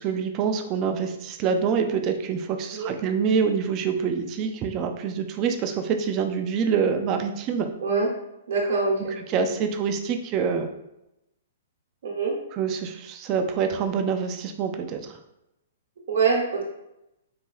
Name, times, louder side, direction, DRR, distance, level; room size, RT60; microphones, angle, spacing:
voice 1, 0.0-7.7 9.3-10.7 12.5-15.2, right 6 dB, 35° right, 6 dB, 0.4 m, -26 dB
voice 2, 8.5-9.1 12.0-12.3 16.1-16.6, right 4 dB, 65° right, -2 dB, 0.8 m, -24 dB
4.1 x 2.7 x 2.3 m, 0.87 s
hypercardioid pair, 125°, 0 cm